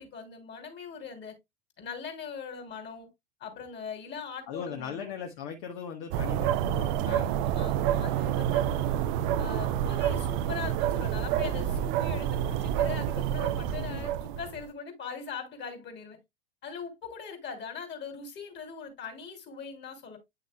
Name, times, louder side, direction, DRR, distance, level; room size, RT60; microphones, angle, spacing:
voice 1, 0.0-1.3 1.8-3.1 3.4-5.1 7.0-9.0 9.4-16.2 16.6-20.2, left 6 dB, 35° left, 3.1 m, -41 dB
voice 2, 4.5-7.3 13.8-14.1, left 7 dB, 55° left, 1.4 m, -39 dB
sound 1, 6.1-14.6, right 10 dB, 55° right, 0.7 m, -28 dB
9.0 x 6.4 x 2.3 m
hypercardioid pair, 85°, 30 cm